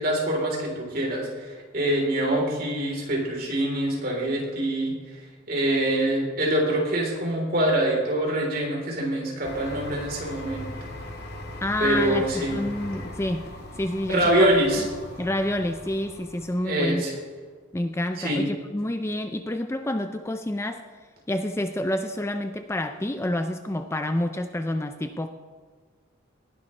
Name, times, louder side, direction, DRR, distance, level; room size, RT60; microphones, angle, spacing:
voice 1, 0.0-4.9 5.5-10.7 11.8-12.6 14.1-14.8 16.7-17.1 18.2-18.4, right 1 dB, 50° right, -1 dB, 3.7 m, -24 dB
Printer Very Close A, 9.4-16.9, left 1 dB, 55° left, 1.8 m, -40 dB
voice 2, 11.6-13.4 13.7-14.9 15.2-17.0 17.7-20.8 21.3-25.3, left 1 dB, 15° left, 7 dB, 0.4 m, -28 dB
18.5 x 11.0 x 3.3 m, 1.5 s
head